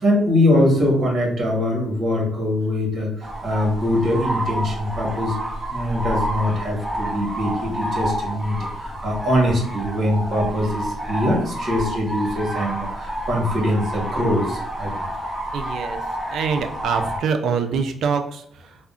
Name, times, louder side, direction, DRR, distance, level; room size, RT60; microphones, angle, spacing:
voice 1, 0.0-5.3 5.7-14.9, left 1 dB, 50° right, -1 dB, 1.2 m, -22 dB
sound 1, 3.2-17.2, right 1 dB, 5° right, 0.9 m, -29 dB
voice 2, 15.5-16.0 16.3-18.8, right 5 dB, 70° right, 7 dB, 0.4 m, -25 dB
3.4 x 2.1 x 2.5 m, 0.68 s
cardioid pair, 90°, 0 cm